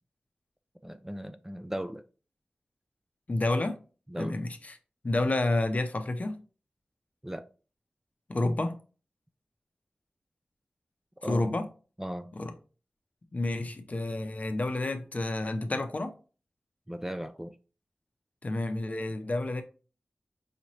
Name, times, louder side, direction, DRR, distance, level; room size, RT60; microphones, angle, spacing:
voice 1, 0.8-2.0 4.1-4.3 7.2-7.5 11.2-11.5 12.0-12.3 16.9-17.5, equal, 10° right, 0.3 m, -37 dB
voice 2, 3.3-3.8 4.2-4.8 5.0-6.4 8.3-8.8 11.2-11.7 12.4-12.5 13.3-16.1 18.4-19.6, left 2 dB, 45° left, 0.6 m, -29 dB
5.0 x 3.0 x 2.8 m
wide cardioid pair, 60°, 4 cm